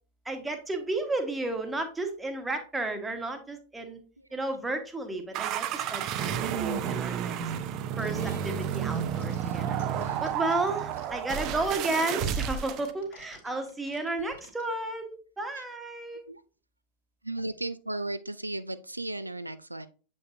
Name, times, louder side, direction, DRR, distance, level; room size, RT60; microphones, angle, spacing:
voice 1, 0.2-4.0 4.3-7.3 8.0-9.8 10.2-16.2, right 2 dB, 10° right, 1.2 m, -33 dB
sound 1, 5.3-12.9, right 8 dB, 40° right, 0.6 m, -31 dB
sound 2, 8.0-14.7, left 6 dB, 60° left, 2.6 m, -52 dB
voice 2, 17.2-19.9, right 2 dB, 85° right, 0.3 m, -35 dB
7.9 x 5.3 x 2.6 m
figure-of-eight pair, 90°, 0 cm